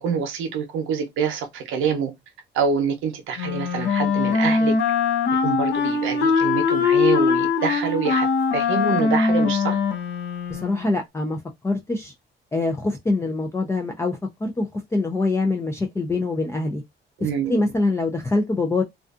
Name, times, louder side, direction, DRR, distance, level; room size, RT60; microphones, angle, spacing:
voice 1, 0.0-2.1 2.5-4.7 5.4-8.3 8.5-9.8 17.2-17.6, right 6 dB, 90° right, 0.7 m, -26 dB
Wind instrument woodwind instrument, 3.4-10.9, left 5 dB, 60° left, 0.6 m, -21 dB
voice 2, 10.5-12.1 12.5-16.8 17.2-18.8, left 2 dB, 15° left, 0.4 m, -24 dB
2.5 x 2.3 x 2.4 m
cardioid pair, 90°, 20 cm